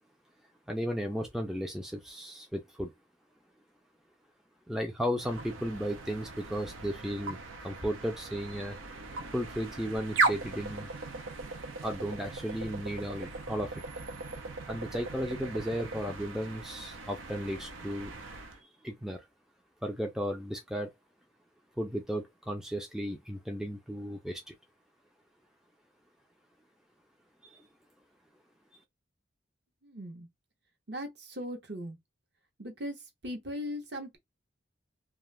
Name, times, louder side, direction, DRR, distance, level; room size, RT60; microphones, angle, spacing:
voice 1, 0.7-2.9 4.7-8.8 9.3-10.9 11.8-13.7 14.7-18.2 18.5-19.2 19.8-20.9 21.8-24.5 27.4-27.7, equal, ahead, 0.4 m, -35 dB
sound 1, 5.2-18.6, right 3 dB, 85° right, 0.6 m, -38 dB
voice 2, 29.8-30.3 30.9-32.0 32.6-33.0 33.2-34.2, equal, 55° right, 0.9 m, -38 dB
2.4 x 2.3 x 3.3 m
head